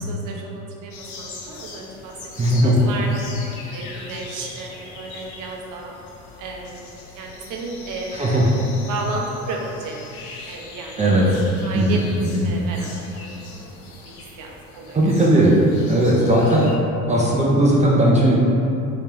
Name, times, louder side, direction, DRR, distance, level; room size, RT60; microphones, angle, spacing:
voice 1, 0.0-3.4 3.7-6.0 6.4-6.9 7.1-8.6 8.9-10.0 10.4-11.2 11.6-12.0 12.4-13.8 14.0-15.2, right 3 dB, 45° right, -1 dB, 0.7 m, -33 dB
sound 1, 0.9-16.8, left 3 dB, 75° left, 0.7 m, -41 dB
voice 2, 2.4-2.8 8.2-8.4 11.0-11.2 11.7-12.0 12.3-12.4 14.9-15.6 15.9-16.7 17.1-18.5, right 1 dB, 15° right, -4 dB, 0.4 m, -17 dB
3.3 x 2.9 x 3.3 m, 2.8 s
hypercardioid pair, 75°, 44 cm